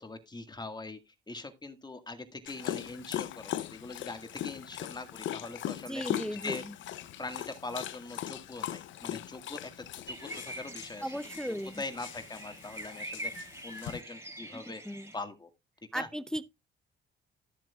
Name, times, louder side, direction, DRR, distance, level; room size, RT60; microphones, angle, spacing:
voice 1, 0.0-6.6 7.2-9.6 10.1-10.2 10.4-11.2 11.5-14.8 15.1-15.5 15.9-16.1, left 3 dB, 20° left, 1.8 m, -42 dB
Dog, 2.5-14.0, left 12 dB, 75° left, 0.7 m, -40 dB
voice 2, 5.9-6.6 11.0-11.8 14.5-15.1 15.9-16.5, equal, 5° left, 0.5 m, -36 dB
sound 1, 10.1-15.2, right 1 dB, 15° right, 3.2 m, -44 dB
13.0 x 7.6 x 2.4 m
cardioid pair, 90°, 20 cm